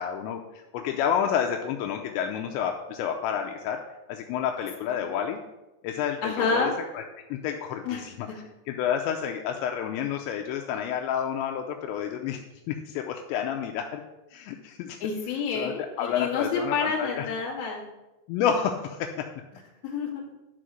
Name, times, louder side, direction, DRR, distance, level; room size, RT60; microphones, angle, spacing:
voice 1, 0.0-3.8 4.1-5.4 5.8-6.7 7.0-7.1 7.3-8.3 8.7-12.4 12.7-14.0 14.3-15.0 15.5-15.7 16.0-16.7 17.0-17.3 18.3-19.3, left 8 dB, 85° left, 4 dB, 2.6 m, -29 dB
voice 2, 6.2-6.8 7.8-8.0 15.0-17.9 19.8-20.2, left 5 dB, 45° left, -3 dB, 2.3 m, -29 dB
11.5 x 4.6 x 6.3 m, 1.0 s
omnidirectional pair, 5.5 m